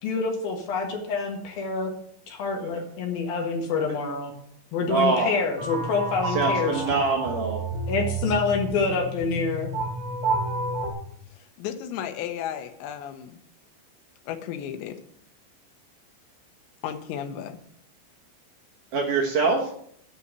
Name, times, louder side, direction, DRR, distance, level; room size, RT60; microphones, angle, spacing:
voice 1, 0.0-1.9 2.3-4.3 4.7-7.1 7.9-9.7, left 4 dB, 65° left, 2 dB, 3.0 m, -27 dB
voice 2, 4.9-5.4 6.3-7.6 18.9-19.7, right 4 dB, 70° right, 0 dB, 2.0 m, -24 dB
sound 1, 5.6-10.9, right 2 dB, 45° right, 3.2 m, -30 dB
voice 3, 11.6-13.4 14.2-15.0 16.8-17.6, left 9 dB, 85° left, 7 dB, 3.1 m, -34 dB
10.0 x 5.6 x 8.1 m, 0.65 s
omnidirectional pair, 5.3 m